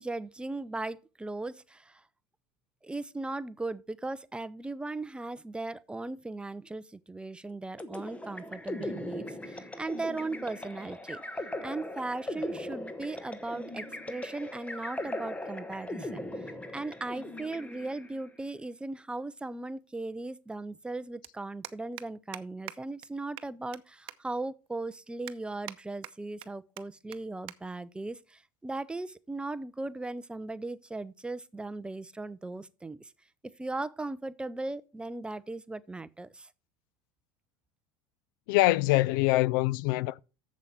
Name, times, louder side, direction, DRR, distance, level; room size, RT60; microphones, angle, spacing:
voice 1, 0.0-2.0 2.8-11.2 11.6-33.1 33.6-36.5, right 2 dB, 10° right, 0.6 m, -38 dB
sound 1, 7.8-18.2, left 1 dB, 10° left, 1.2 m, -39 dB
sound 2, 18.9-19.0 20.5-20.6 20.7-20.9 21.2-21.3 21.6-22.1 22.3-22.4 22.7-22.8 23.0-23.1 23.4-23.8 24.1-24.2 24.6-24.7 25.3-25.8 26.0-26.5 26.8-26.9 27.1-27.2 27.5-27.6 27.9-28.1 28.9-29.2, right 16 dB, 55° right, 0.8 m, -43 dB
voice 2, 38.5-40.2, left 19 dB, 75° left, 0.4 m, -24 dB
7.4 x 7.3 x 5.4 m
supercardioid pair, 115°, 11 cm